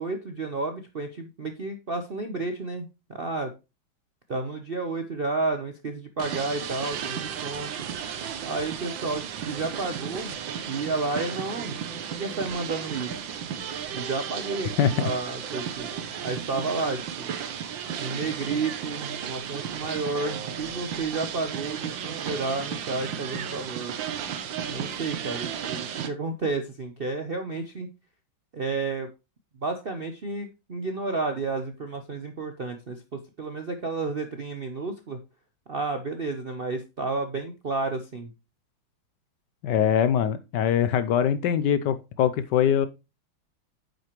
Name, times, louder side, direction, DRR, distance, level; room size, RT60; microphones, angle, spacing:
voice 1, 0.0-3.5 4.3-7.7 8.4-10.3 10.7-11.8 12.1-13.1 13.9-14.7 15.0-15.9 16.2-17.3 18.0-23.9 24.7-27.9 28.5-29.1 29.6-35.2 35.7-38.3, right 3 dB, 50° right, 0.6 m, -31 dB
sound 1, 6.2-26.1, right 8 dB, 70° right, 1.6 m, -34 dB
voice 2, 14.8-15.1 39.6-42.9, left 9 dB, 70° left, 1.1 m, -23 dB
9.6 x 6.7 x 3.1 m
omnidirectional pair, 2.2 m